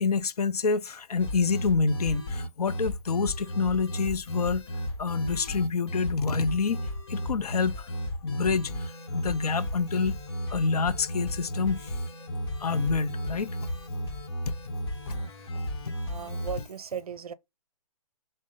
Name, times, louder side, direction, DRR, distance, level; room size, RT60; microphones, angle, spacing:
voice 1, 0.0-6.8 7.1-7.9 8.2-10.2 10.5-12.0 12.6-13.6 14.5-14.6 15.1-15.2, left 5 dB, 90° left, 0.6 m, -27 dB
sound 1, 1.2-16.7, equal, 45° left, 1.0 m, -34 dB
voice 2, 16.1-17.3, right 8 dB, 75° right, 0.6 m, -36 dB
5.1 x 2.1 x 3.7 m
hypercardioid pair, 165°, 19 cm